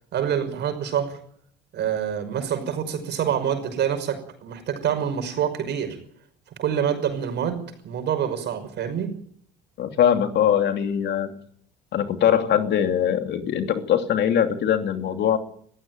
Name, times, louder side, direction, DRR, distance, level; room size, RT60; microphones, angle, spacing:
voice 1, 0.1-1.1 1.7-6.0 6.6-7.6 7.8-9.1, right 8 dB, 55° right, 7 dB, 5.8 m, -26 dB
voice 2, 9.8-11.4 11.9-15.4, left 9 dB, 55° left, 7 dB, 2.9 m, -22 dB
21.5 x 15.0 x 9.3 m, 0.62 s
hypercardioid pair, 65°, 21 cm